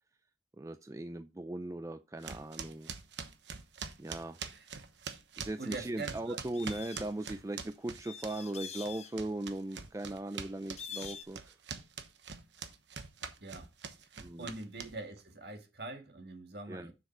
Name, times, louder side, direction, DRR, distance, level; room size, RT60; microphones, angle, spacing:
voice 1, 0.6-2.9 4.0-4.4 5.4-11.6 14.2-14.5 16.7-16.9, right 2 dB, 15° right, 0.4 m, -39 dB
sound 1, 2.2-8.6 8.8-15.2, right 6 dB, 85° right, 1.1 m, -44 dB
voice 2, 5.6-6.4 13.4-13.7 14.4-16.9, right 3 dB, 65° right, 1.8 m, -43 dB
sound 2, 6.5-7.1 8.0-9.1 10.8-11.3, left 7 dB, 35° left, 0.9 m, -45 dB
7.2 x 6.6 x 4.3 m
head